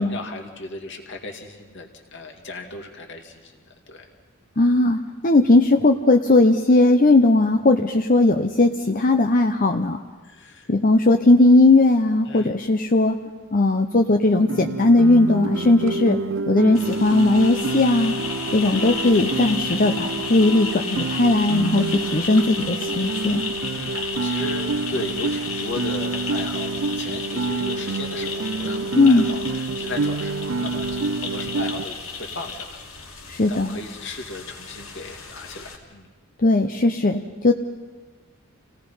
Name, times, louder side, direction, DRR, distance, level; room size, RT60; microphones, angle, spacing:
voice 1, 0.0-3.5 3.9-4.1 10.2-10.7 12.3-12.6 23.7-32.8 33.5-36.1, left 2 dB, 60° left, 4 dB, 2.4 m, -36 dB
voice 2, 4.6-10.0 10.7-13.2 13.5-16.2 16.5-18.1 18.5-23.4 29.0-29.3 33.3-33.8 36.4-37.5, left 2 dB, 40° left, 5 dB, 0.8 m, -18 dB
Guitar, 14.5-31.9, right 3 dB, 65° right, 0.5 m, -28 dB
sound 1, 16.7-35.8, left 4 dB, 80° left, 3.0 m, -33 dB
28.0 x 17.5 x 5.6 m, 1.4 s
head